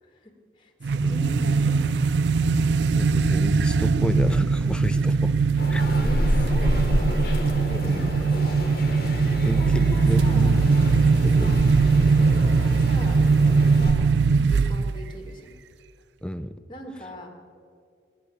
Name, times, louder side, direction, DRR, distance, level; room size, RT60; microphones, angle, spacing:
voice 1, 0.0-2.1 5.9-7.1 7.7-8.8 9.2-10.7 12.1-14.2 14.5-15.5 16.7-17.3, equal, 25° left, 3 dB, 1.8 m, -41 dB
sound 1, 0.8-15.1, right 4 dB, 75° right, 0.4 m, -21 dB
voice 2, 3.0-5.3 5.7-5.9 7.8-8.1 9.5-10.6 10.9-11.6 16.2-16.5, equal, 5° left, 12 dB, 0.4 m, -31 dB
sound 2, 5.6-13.9, equal, 55° left, 1.4 m, -29 dB
21.0 x 8.3 x 6.8 m, 2.3 s
head